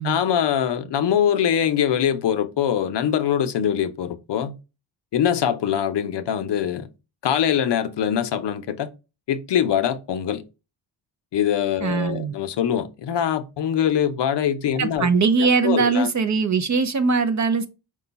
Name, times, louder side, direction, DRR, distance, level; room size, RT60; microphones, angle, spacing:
voice 1, 0.0-4.5 5.1-6.9 7.2-8.9 9.3-10.4 11.3-15.1 15.4-16.1, left 9 dB, 65° left, 0.6 m, -23 dB
voice 2, 11.8-12.3 14.8-17.7, right 4 dB, 40° right, 0.5 m, -21 dB
4.8 x 2.2 x 3.9 m
wide cardioid pair, 105°, 46 cm